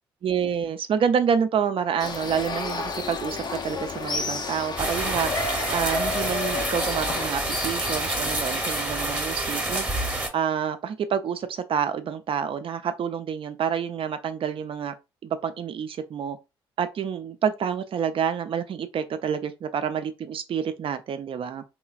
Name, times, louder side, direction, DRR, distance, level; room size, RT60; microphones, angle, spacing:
voice 1, 0.2-5.3 5.7-9.9 10.3-14.9 15.2-16.4 16.8-21.6, right 7 dB, 50° right, 0.5 m, -28 dB
sound 1, 2.0-8.8, left 4 dB, 35° left, 0.5 m, -32 dB
sound 2, 4.8-10.3, right 1 dB, 10° right, 0.9 m, -28 dB
3.1 x 2.2 x 2.3 m
hypercardioid pair, 45°, 12 cm